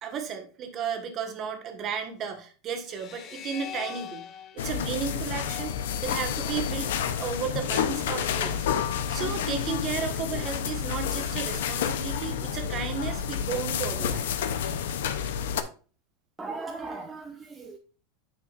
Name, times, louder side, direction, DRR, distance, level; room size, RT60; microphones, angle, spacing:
voice 1, 0.0-4.2 4.5-8.7 9.1-14.3, right 7 dB, 35° right, 5 dB, 1.5 m, -34 dB
sound 1, 2.9-6.2, left 8 dB, 35° left, 0.7 m, -43 dB
sound 2, 4.6-15.6, left 8 dB, 85° left, 0.7 m, -29 dB
voice 2, 16.4-17.8, right 3 dB, 10° right, 2 dB, 0.7 m, -37 dB
9.3 x 6.2 x 2.5 m, 0.38 s
supercardioid pair, 140°, 0 cm